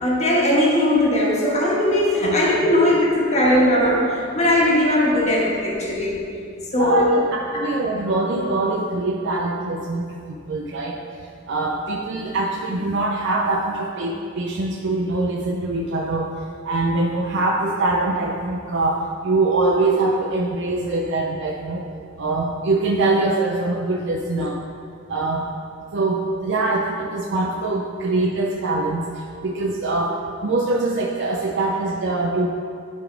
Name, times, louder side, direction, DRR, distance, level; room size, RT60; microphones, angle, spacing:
voice 1, 0.0-6.2 6.7-7.1 24.3-24.5, left 1 dB, 35° left, -4 dB, 1.5 m, -19 dB
voice 2, 6.7-11.0 11.5-16.3 16.6-21.9 22.2-24.6 25.1-25.5 25.9-32.5, right 2 dB, 65° right, 0 dB, 0.5 m, -23 dB
10.0 x 4.1 x 4.6 m, 2.4 s
head